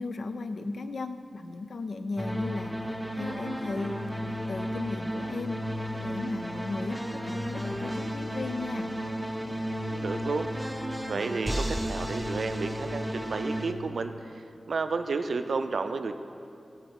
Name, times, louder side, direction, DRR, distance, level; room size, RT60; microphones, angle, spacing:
voice 1, 0.0-5.6 6.0-8.9, left 3 dB, 75° left, 10 dB, 0.4 m, -36 dB
sound 1, 2.2-13.7, equal, 5° right, 0.6 m, -33 dB
voice 2, 9.9-10.5 11.1-16.1, right 4 dB, 80° right, 9 dB, 0.4 m, -32 dB
9.0 x 3.9 x 7.1 m, 2.5 s
wide cardioid pair, 65°, 0 cm